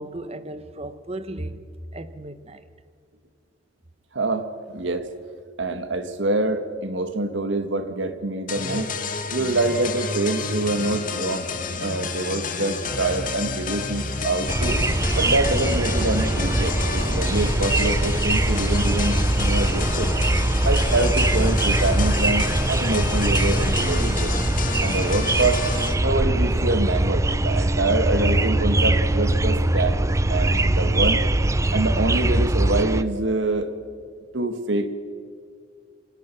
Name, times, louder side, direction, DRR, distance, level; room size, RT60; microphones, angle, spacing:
voice 1, 0.0-1.6 1.9-2.7, right 1 dB, 35° right, 1.1 m, -35 dB
voice 2, 4.1-5.1 5.6-8.9 9.3-11.5 11.8-14.8 15.1-20.1 20.6-24.4 24.8-25.7 26.0-30.0 30.3-31.2 31.7-33.7 34.3-34.9, right 2 dB, 85° right, 1.7 m, -25 dB
sound 1, 8.5-25.9, left 4 dB, 50° left, 2.1 m, -30 dB
sound 2, 14.5-33.0, right 1 dB, 15° right, 0.5 m, -22 dB
27.5 x 24.5 x 6.0 m
head